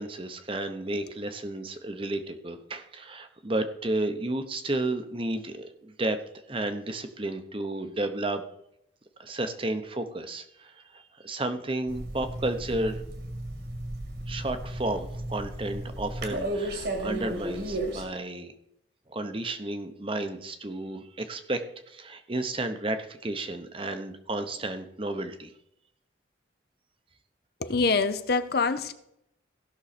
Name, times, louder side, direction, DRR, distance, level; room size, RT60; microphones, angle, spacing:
voice 1, 0.0-6.2 6.5-8.4 9.2-13.0 14.3-18.5 19.1-25.5, right 2 dB, 30° right, 0.8 m, -32 dB
sound 1, 11.9-18.0, right 1 dB, 60° right, 1.9 m, -34 dB
voice 2, 27.6-28.9, left 4 dB, 55° left, 0.6 m, -25 dB
16.0 x 6.3 x 4.2 m
head